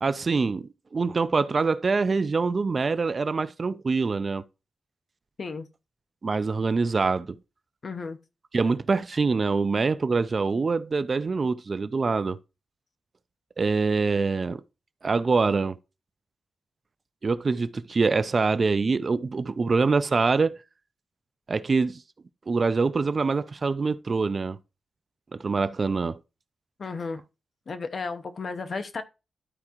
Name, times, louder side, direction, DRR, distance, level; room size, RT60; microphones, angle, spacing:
voice 1, 0.0-4.4 6.2-7.4 8.5-12.4 13.6-14.6 15.0-15.8 17.2-20.6 21.5-22.0 22.5-24.6 25.3-26.2, right 4 dB, 35° right, 0.4 m, -25 dB
voice 2, 7.8-8.2 26.8-27.2 27.7-29.0, left 4 dB, 45° left, 0.8 m, -33 dB
12.0 x 4.7 x 2.9 m
wide cardioid pair, 145°, 0 cm